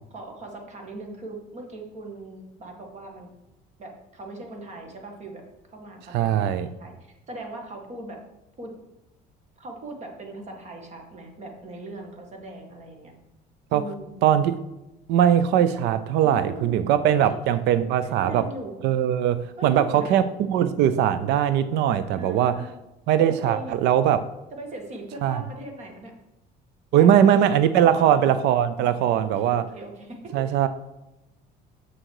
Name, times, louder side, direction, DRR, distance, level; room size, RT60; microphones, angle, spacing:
voice 1, 0.1-3.3 3.8-5.4 5.7-8.2 8.6-8.7 9.6-13.1 13.7-14.2 16.2-16.8 17.1-17.4 18.0-18.8 19.6-20.2 22.1-22.7 23.3-23.7 24.5-26.1 26.9-27.4 27.8-28.4 28.8-30.7, right 2 dB, 40° right, 2 dB, 1.9 m, -39 dB
voice 2, 6.1-6.7 13.7-13.8 14.2-14.6 15.1-18.5 18.8-22.6 23.1-24.3 25.2-25.4 26.9-29.7 30.3-30.7, right 10 dB, 70° right, 13 dB, 0.5 m, -20 dB
7.7 x 6.3 x 4.7 m, 0.94 s
cardioid pair, 130°, 18 cm